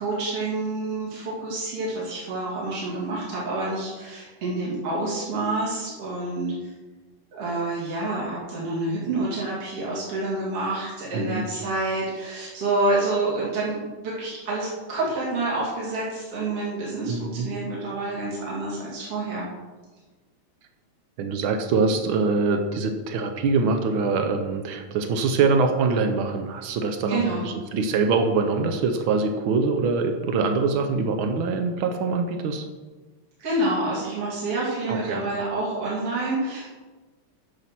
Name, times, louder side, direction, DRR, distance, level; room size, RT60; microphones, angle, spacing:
voice 1, 0.0-6.5 7.3-19.5 27.1-27.4 33.4-36.8, right 2 dB, 50° right, -6 dB, 3.4 m, -28 dB
voice 2, 11.1-11.4 17.0-17.5 21.2-32.6 34.9-35.3, right 4 dB, 85° right, 6 dB, 1.1 m, -24 dB
10.0 x 7.3 x 5.9 m, 1.3 s
omnidirectional pair, 3.4 m